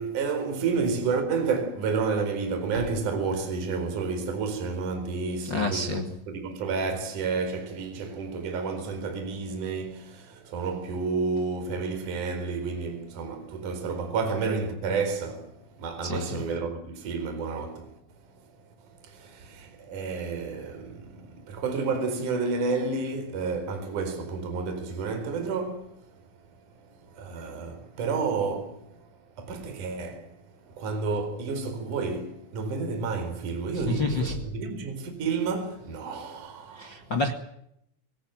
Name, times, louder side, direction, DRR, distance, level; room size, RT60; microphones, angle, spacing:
voice 1, 0.0-18.0 18.9-26.0 27.1-28.9 29.4-30.3 30.6-37.1, right 4 dB, 40° right, 5.4 m, -30 dB
voice 2, 5.4-6.1 16.0-16.4 33.7-34.4 36.7-37.3, left 2 dB, 65° left, 1.0 m, -29 dB
26.5 x 18.0 x 9.1 m
omnidirectional pair, 5.9 m